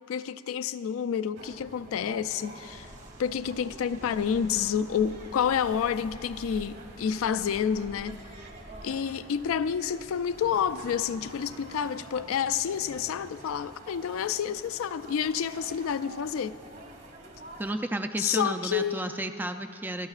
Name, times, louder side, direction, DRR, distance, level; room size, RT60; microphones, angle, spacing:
voice 1, 0.1-2.9 3.2-8.2 8.8-16.6 18.2-19.1, left 8 dB, 80° left, 0.3 m, -29 dB
sound 1, 1.4-17.7, right 2 dB, 55° right, 2.0 m, -48 dB
sound 2, 2.6-8.9, equal, 35° right, 1.1 m, -49 dB
voice 2, 17.6-20.1, right 1 dB, 10° right, 0.3 m, -32 dB
27.5 x 12.5 x 2.4 m
head